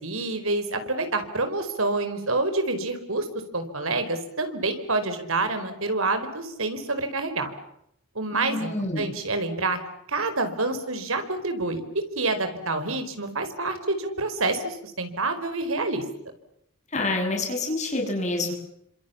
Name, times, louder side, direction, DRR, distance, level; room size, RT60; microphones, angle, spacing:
voice 1, 0.0-3.3 3.5-7.5 8.1-8.7 9.0-9.8 10.1-16.0, right 2 dB, 70° right, 8 dB, 4.7 m, -27 dB
voice 2, 8.3-9.1 16.9-18.5, left 2 dB, 30° left, 2 dB, 7.5 m, -27 dB
29.5 x 26.5 x 7.3 m, 0.76 s
head